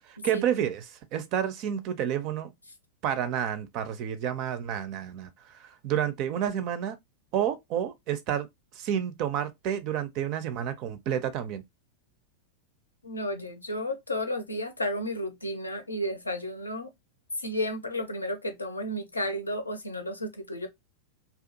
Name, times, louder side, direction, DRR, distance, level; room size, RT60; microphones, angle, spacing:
voice 1, 0.1-2.5 3.0-7.0 7.3-8.5 8.8-11.6, right 9 dB, 40° right, 0.4 m, -30 dB
voice 2, 13.0-16.9 17.4-20.7, left 1 dB, 80° left, 0.6 m, -32 dB
2.5 x 2.3 x 2.6 m
figure-of-eight pair, 90°, 0 cm